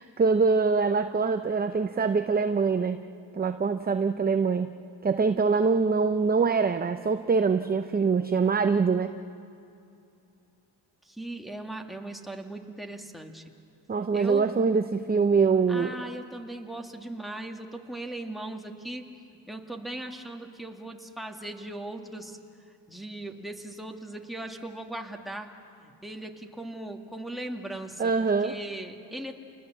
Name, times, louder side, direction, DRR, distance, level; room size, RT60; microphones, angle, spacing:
voice 1, 0.0-3.0 3.3-4.7 5.0-9.1 13.9-15.9 28.0-28.5, right 5 dB, 20° right, 8 dB, 0.7 m, -24 dB
voice 2, 11.0-13.4 14.1-14.5 15.7-19.1 19.5-22.4 22.9-25.5 25.8-28.1 28.4-29.4, right 1 dB, ahead, 2 dB, 2.2 m, -38 dB
29.5 x 20.5 x 7.4 m, 2.7 s
supercardioid pair, 80°, 47 cm